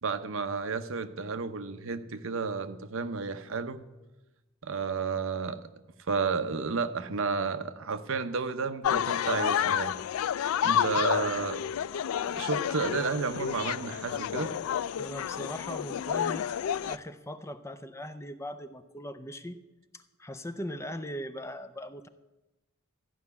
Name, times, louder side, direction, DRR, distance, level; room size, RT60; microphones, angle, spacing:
voice 1, 0.0-3.8 4.6-5.6 6.1-10.0 10.6-11.6 12.3-14.5, right 4 dB, 70° right, 10 dB, 0.8 m, -32 dB
sound 1, 8.8-17.0, left 9 dB, 90° left, 0.3 m, -30 dB
voice 2, 15.0-16.5 16.8-19.6 19.9-22.1, equal, 15° left, 10 dB, 0.6 m, -40 dB
14.0 x 5.7 x 9.7 m, 1.0 s
head